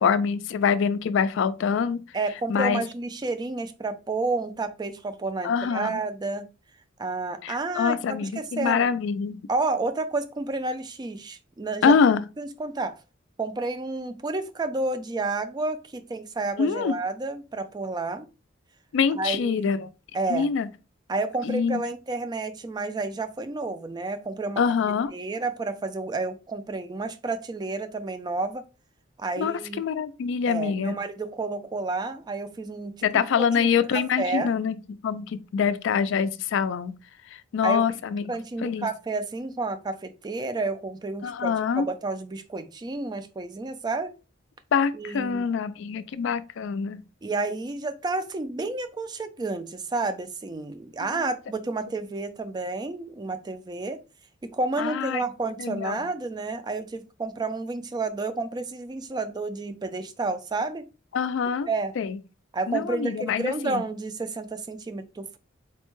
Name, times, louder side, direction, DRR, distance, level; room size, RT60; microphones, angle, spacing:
voice 1, 0.0-2.0 2.5-2.8 5.4-6.0 7.4-9.4 11.8-12.2 16.6-16.9 18.9-19.9 20.3-20.7 21.4-21.8 24.6-25.1 29.4-31.0 33.0-37.0 37.3-38.2 38.6-38.9 41.2-41.9 44.7-47.0 51.0-51.3 54.8-55.2 55.6-56.0 61.1-61.7 62.0-62.2 62.7-63.8, left 6 dB, 65° left, 0.3 m, -25 dB
voice 2, 2.1-6.5 7.0-8.9 9.5-11.9 12.4-13.0 13.4-18.3 19.2-19.7 20.1-20.5 21.1-24.6 25.1-28.6 29.2-29.8 30.5-33.1 33.4-33.7 34.2-34.5 37.6-37.8 38.3-44.1 44.9-45.5 47.2-54.0 54.5-60.9 61.7-61.9 62.5-65.4, right 3 dB, 20° right, 0.3 m, -30 dB
4.3 x 2.1 x 3.0 m
head